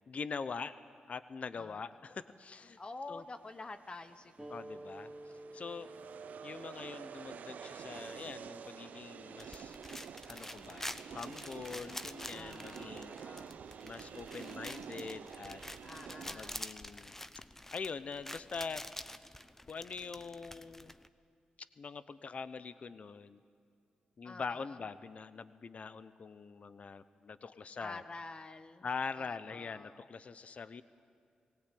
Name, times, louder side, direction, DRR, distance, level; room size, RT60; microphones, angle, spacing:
voice 1, 0.1-0.7 1.1-2.8 3.1-3.2 4.5-5.1 5.5-5.9 6.4-9.8 10.3-13.4 13.8-15.6 16.3-17.2 17.7-18.9 19.7-20.9 21.6-23.4 24.2-28.0 28.8-30.8, left 5 dB, 55° left, 14 dB, 0.7 m, -43 dB
voice 2, 1.6-1.9 2.8-4.6 5.0-5.1 12.3-13.6 15.8-16.7 24.2-24.8 27.8-28.9 29.1-30.0, left 3 dB, 35° left, 9 dB, 1.1 m, -48 dB
sound 1, 3.6-16.6, right 7 dB, 75° right, 0.7 m, -49 dB
sound 2, 4.4-9.5, right 1 dB, 10° right, 2.6 m, -52 dB
sound 3, 9.4-21.1, left 1 dB, 15° left, 0.8 m, -48 dB
19.0 x 18.5 x 8.5 m, 2.4 s
cardioid pair, 55°, 3 cm